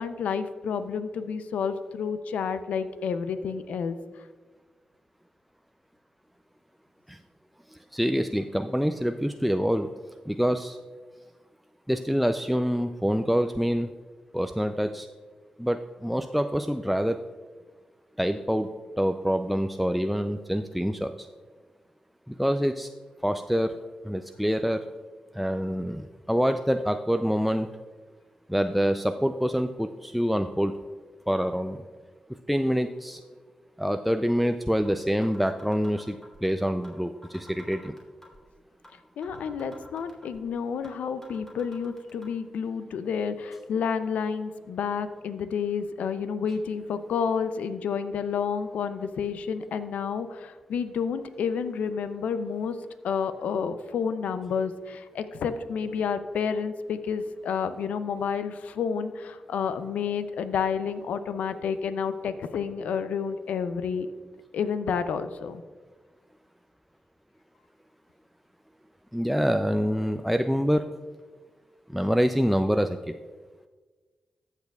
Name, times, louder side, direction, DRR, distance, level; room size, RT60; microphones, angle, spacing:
voice 1, 0.0-4.0 39.2-52.8 53.0-64.1 64.5-65.6, left 6 dB, 85° left, 11 dB, 0.5 m, -30 dB
voice 2, 7.7-9.9 10.3-10.8 11.9-13.9 14.3-15.1 15.6-17.2 18.2-21.3 22.3-22.9 23.2-23.7 24.0-24.8 25.3-27.7 28.5-30.8 31.3-31.8 32.5-33.2 33.8-37.9 69.1-70.8 71.9-73.1, equal, ahead, 7 dB, 0.4 m, -26 dB
sound 1, 34.8-34.9 35.2-36.4 36.8-37.0 37.2-38.4 38.8-38.9 39.2-40.4 40.8-41.0 41.2-42.3, equal, 25° left, 2.7 m, -50 dB
14.5 x 6.7 x 2.3 m, 1.3 s
supercardioid pair, 45°, 2 cm